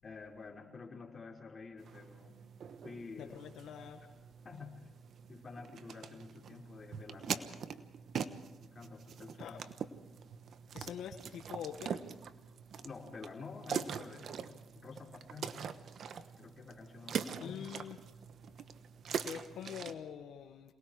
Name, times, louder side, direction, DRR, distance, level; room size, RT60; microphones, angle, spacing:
voice 1, 0.0-2.4 2.8-3.4 4.4-4.9 5.3-7.6 8.6-9.6 12.8-15.5 16.4-17.7, left 4 dB, 35° left, -1 dB, 5.1 m, -49 dB
sound 1, 1.8-19.9, right 7 dB, 60° right, 1.2 m, -43 dB
voice 2, 3.2-4.0 9.4-9.6 10.7-12.0 17.4-18.0 19.2-20.7, left 9 dB, 75° left, 5 dB, 1.3 m, -45 dB
27.5 x 20.0 x 4.9 m, 1.1 s
cardioid pair, 90°, 0 cm